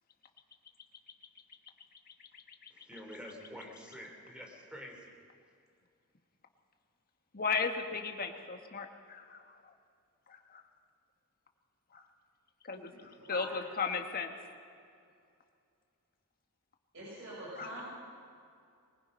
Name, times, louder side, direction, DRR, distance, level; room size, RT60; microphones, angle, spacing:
voice 1, 2.7-5.1, equal, 5° right, 1 dB, 3.1 m, -48 dB
voice 2, 7.3-9.5 10.3-10.6 11.9-12.0 12.6-12.9 13.3-14.3 17.6-17.8, left 5 dB, 45° left, 5 dB, 1.6 m, -35 dB
voice 3, 12.9-13.7 16.9-17.8, right 1 dB, 65° right, -7 dB, 6.1 m, -46 dB
22.5 x 21.0 x 5.5 m, 2.4 s
head